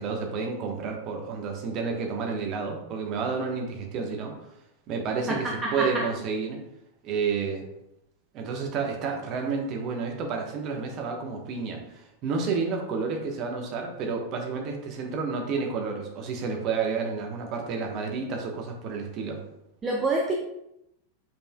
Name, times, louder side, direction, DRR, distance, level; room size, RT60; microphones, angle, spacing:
voice 1, 0.0-4.3 4.9-6.6 7.0-7.6 8.3-19.4, right 5 dB, 35° right, 2 dB, 1.2 m, -30 dB
voice 2, 5.3-5.9 19.8-20.3, right 2 dB, 20° right, 0 dB, 0.7 m, -27 dB
7.2 x 5.6 x 2.3 m, 0.84 s
figure-of-eight pair, 90°, 0 cm